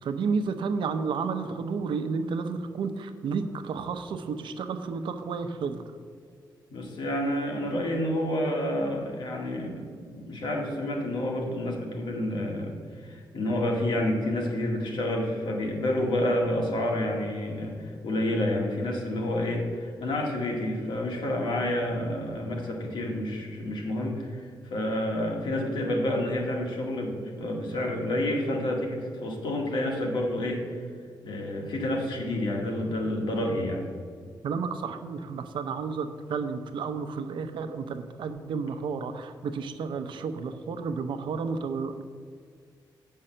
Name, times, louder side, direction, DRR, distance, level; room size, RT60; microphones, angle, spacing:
voice 1, 0.0-5.8 34.4-42.0, right 5 dB, 80° right, 8 dB, 0.7 m, -31 dB
voice 2, 6.7-12.8 13.0-30.8 31.2-33.9, left 1 dB, 75° left, 0 dB, 1.8 m, -29 dB
8.7 x 5.5 x 6.7 m, 2.1 s
wide cardioid pair, 140°, 8 cm